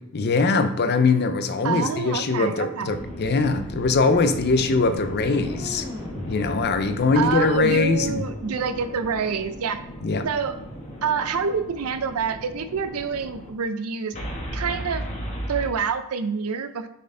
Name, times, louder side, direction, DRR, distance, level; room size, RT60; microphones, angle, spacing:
voice 1, 0.1-5.9 6.3-8.2 10.0-10.3, left 4 dB, 50° left, 9 dB, 0.5 m, -22 dB
voice 2, 1.6-3.0 7.1-9.8 10.2-10.5 11.0-14.2 14.5-15.0 15.5-16.9, right 6 dB, 80° right, 10 dB, 0.5 m, -27 dB
sound 1, 2.9-13.5 14.1-15.7, equal, 30° left, 1.1 m, -36 dB
sound 2, 4.2-9.1, left 1 dB, 15° right, 1.0 m, -39 dB
6.6 x 4.3 x 3.8 m, 0.81 s
head